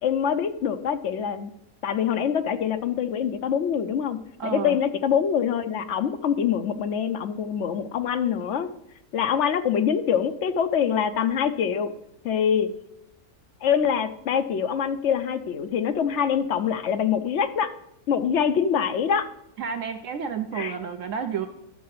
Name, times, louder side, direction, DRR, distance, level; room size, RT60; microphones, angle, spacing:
voice 1, 0.0-1.5 1.8-4.2 4.5-8.7 9.1-11.9 12.2-12.7 13.6-17.7 18.1-19.3 20.5-20.8, left 8 dB, 60° left, 9 dB, 0.9 m, -24 dB
voice 2, 4.4-4.8 19.6-21.5, right 7 dB, 70° right, 7 dB, 0.9 m, -30 dB
11.0 x 6.4 x 5.7 m, 0.80 s
omnidirectional pair, 1.6 m